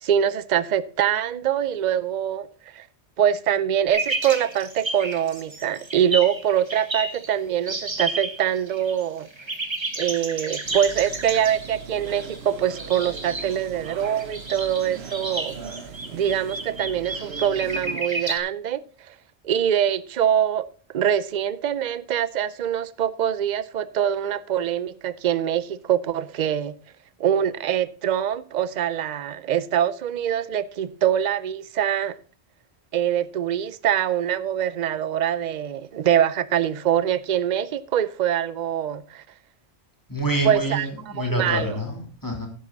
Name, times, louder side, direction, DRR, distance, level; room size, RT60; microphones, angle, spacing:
voice 1, 0.0-2.5 2.7-2.9 3.2-9.3 10.0-15.6 16.1-18.8 19.4-20.7 20.9-26.8 27.2-32.2 32.9-39.2 40.4-40.9 41.2-41.8, right 10 dB, 50° right, 0.7 m, -24 dB
sound 1, 3.9-7.3 7.7-9.0 9.3-18.4, right 2 dB, 25° right, 1.3 m, -32 dB
sound 2, 10.6-18.0, right 6 dB, 75° right, 1.2 m, -40 dB
voice 2, 40.1-42.5, right 1 dB, 20° left, 3.1 m, -27 dB
11.0 x 9.7 x 4.0 m
omnidirectional pair, 1.1 m